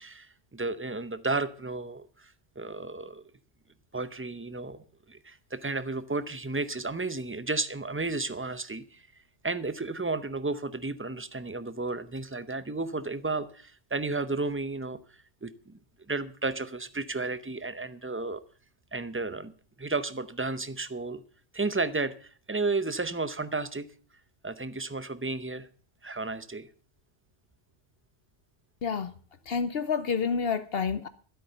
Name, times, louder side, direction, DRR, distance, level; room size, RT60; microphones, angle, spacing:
voice 1, 0.0-3.2 3.9-9.1 9.4-15.0 15.4-15.8 16.1-18.4 18.9-19.5 19.8-21.2 21.5-23.9 24.4-25.7 26.0-26.7, right 3 dB, 15° right, 0.5 m, -33 dB
voice 2, 28.8-29.1 29.5-31.1, left 6 dB, 60° left, 0.9 m, -29 dB
13.0 x 8.5 x 6.7 m
omnidirectional pair, 1.2 m